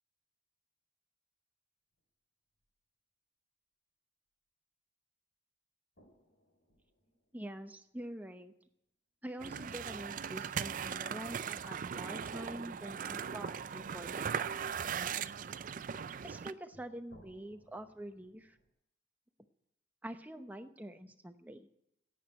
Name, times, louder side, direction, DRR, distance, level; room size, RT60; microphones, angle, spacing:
sound 1, 2.0-2.1 2.6-2.7 6.0-8.4 8.7-8.8 10.3-13.1 14.6-18.7, equal, 65° left, 3.5 m, -67 dB
voice 1, 7.3-8.5 9.2-14.6 16.2-18.6 20.0-21.7, right 1 dB, 10° right, 7 dB, 0.8 m, -46 dB
sound 2, 9.4-16.5, right 7 dB, 45° right, 0.4 m, -39 dB
10.5 x 8.6 x 9.8 m, 0.80 s
head